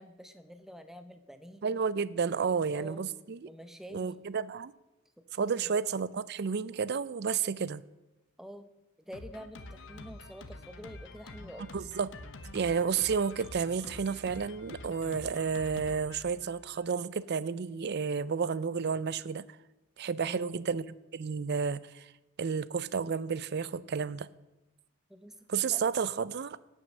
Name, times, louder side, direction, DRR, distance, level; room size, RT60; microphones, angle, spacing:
voice 1, 0.0-1.6 2.3-3.1 3.5-4.2 5.3-5.7 8.4-8.7 9.0-11.7 20.2-20.6 25.1-25.4 25.7-25.8, equal, ahead, 8 dB, 0.7 m, -47 dB
voice 2, 1.6-3.5 3.9-4.7 5.3-7.8 11.7-12.1 12.5-19.4 20.0-20.9 21.1-22.1 22.4-24.3 25.5-26.6, right 6 dB, 50° right, 18 dB, 0.4 m, -31 dB
Drum kit, 9.1-16.9, left 2 dB, 55° left, 1.0 m, -47 dB
17.5 x 6.3 x 6.4 m, 1.0 s
head